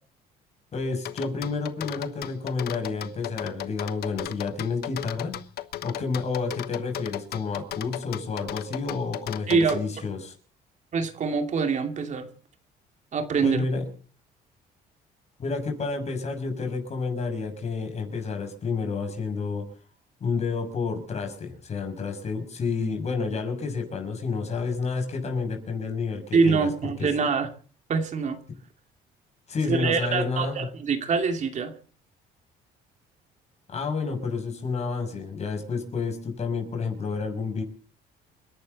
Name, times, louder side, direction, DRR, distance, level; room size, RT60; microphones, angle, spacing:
voice 1, 0.7-5.4 5.8-10.3 13.4-13.9 15.4-19.6 20.2-26.7 27.0-27.1 28.5-28.6 29.5-30.7 33.7-37.6, left 4 dB, 40° left, 4 dB, 6.6 m, -30 dB
sound 1, 1.1-9.8, left 13 dB, 70° left, 1.2 m, -35 dB
voice 2, 9.5-9.8 10.9-12.3 13.1-13.6 26.3-27.5 27.9-28.4 29.7-31.7, right 5 dB, 45° right, 6 dB, 2.5 m, -24 dB
29.0 x 11.5 x 4.2 m, 0.40 s
cardioid pair, 110°, 17 cm